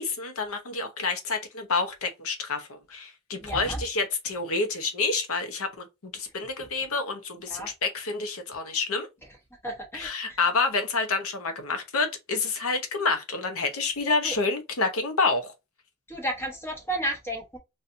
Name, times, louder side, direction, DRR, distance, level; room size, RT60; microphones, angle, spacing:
voice 1, 0.0-9.1 9.9-15.5, left 4 dB, 70° left, 0.8 m, -28 dB
voice 2, 3.4-3.8 7.5-7.7 9.6-10.4 14.2-14.3 16.1-17.6, right 1 dB, 10° left, 1.1 m, -33 dB
4.2 x 2.5 x 2.5 m
head